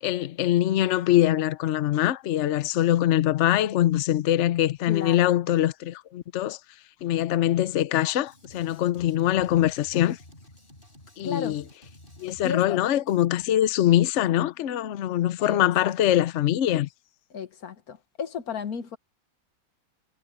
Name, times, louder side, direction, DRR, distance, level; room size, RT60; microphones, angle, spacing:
voice 1, 0.0-6.6 7.0-10.2 11.2-11.6 12.2-16.9, left 13 dB, 85° left, 0.6 m, -23 dB
voice 2, 4.9-5.3 11.2-11.6 12.4-12.8 15.4-16.2 17.3-19.0, left 6 dB, 55° left, 1.6 m, -34 dB
Drum kit, 8.3-13.3, left 1 dB, 25° left, 6.5 m, -51 dB
omnidirectional pair, 2.1 m